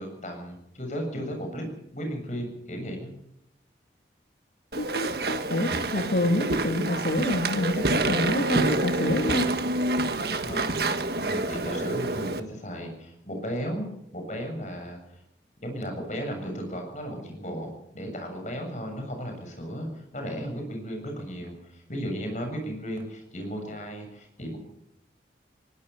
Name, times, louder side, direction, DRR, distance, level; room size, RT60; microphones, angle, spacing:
voice 1, 0.0-1.7 1.9-3.1 10.4-10.8 11.1-15.2 15.6-24.6, equal, 40° left, 4 dB, 7.3 m, -35 dB
Walk footsteps / Chatter / Squeak, 4.7-12.4, right 2 dB, 60° right, 1.6 m, -27 dB
voice 2, 4.8-9.5, left 1 dB, 75° left, 4 dB, 1.9 m, -27 dB
20.5 x 18.5 x 7.0 m, 0.78 s
head